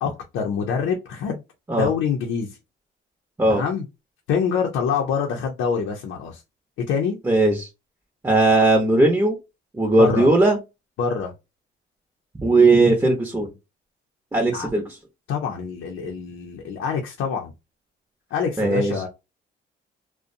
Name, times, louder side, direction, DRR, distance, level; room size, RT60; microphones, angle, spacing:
voice 1, 0.0-1.4 1.8-2.5 3.5-3.8 4.3-6.4 6.9-7.2 10.0-10.3 11.0-11.3 14.5-14.7 15.3-17.5 18.3-19.1, left 6 dB, 90° left, 1 dB, 0.6 m, -25 dB
voice 2, 7.2-7.7 8.2-9.4 9.7-10.6 12.4-13.5 14.3-14.8 18.6-18.9, right 2 dB, 15° right, 1 dB, 0.8 m, -18 dB
2.5 x 2.1 x 2.5 m, 0.25 s
cardioid pair, 90°, 20 cm